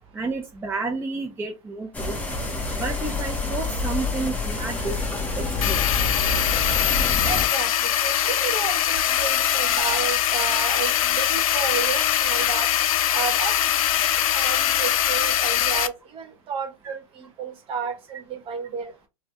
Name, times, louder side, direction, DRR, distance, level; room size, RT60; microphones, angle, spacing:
voice 1, 0.1-2.2 2.8-4.9 5.4-5.8 10.7-10.9 12.9-13.0 16.8-17.0, right 4 dB, 15° right, 0.5 m, -31 dB
sound 1, 1.9-7.5, left 3 dB, 10° left, 1.0 m, -27 dB
sound 2, 5.6-15.9, left 11 dB, 75° left, 0.5 m, -22 dB
voice 2, 7.3-12.7 13.1-18.9, right 6 dB, 30° right, 1.0 m, -32 dB
3.5 x 2.2 x 3.0 m
hypercardioid pair, 120°, 18 cm